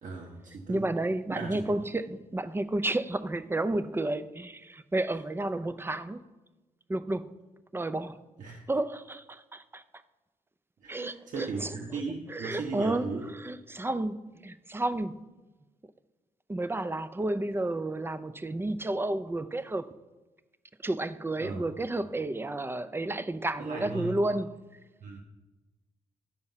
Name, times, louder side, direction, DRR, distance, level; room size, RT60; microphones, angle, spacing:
voice 1, 0.0-0.9 1.3-1.6 8.4-8.6 10.8-13.3 21.4-21.6 23.6-24.2 25.0-25.2, right 4 dB, 65° right, 1.1 m, -37 dB
voice 2, 0.7-6.2 6.9-7.3 7.7-8.2 8.7-9.8 10.9-11.8 12.3-15.2 16.5-19.9 20.8-24.5, right 2 dB, 15° right, 0.5 m, -31 dB
10.5 x 4.4 x 5.6 m
cardioid pair, 70°, 14 cm